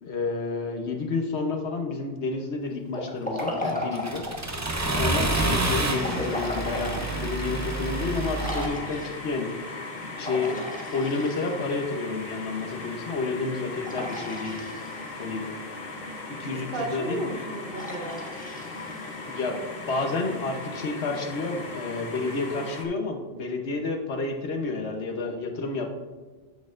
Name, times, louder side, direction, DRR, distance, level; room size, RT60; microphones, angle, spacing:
voice 1, 0.0-4.3 4.9-9.5 10.0-14.6 15.2-15.4 16.4-17.2 19.3-19.6 19.9-25.9, left 3 dB, 80° left, 4 dB, 1.3 m, -30 dB
Liquid, 2.9-4.5 6.0-7.0 7.5-7.6 8.4-9.3 10.2-11.8 13.8-15.2 17.7-19.4, left 1 dB, 10° left, 1.3 m, -35 dB
Accelerating revving vroom, 3.4-8.7, right 2 dB, 20° right, 0.6 m, -29 dB
sound 1, 5.3-22.8, left 3 dB, 55° left, 1.2 m, -38 dB
voice 2, 5.4-5.7 16.5-18.2, right 3 dB, 60° right, 4 dB, 1.1 m, -35 dB
13.5 x 6.3 x 2.6 m, 1.4 s
omnidirectional pair, 1.1 m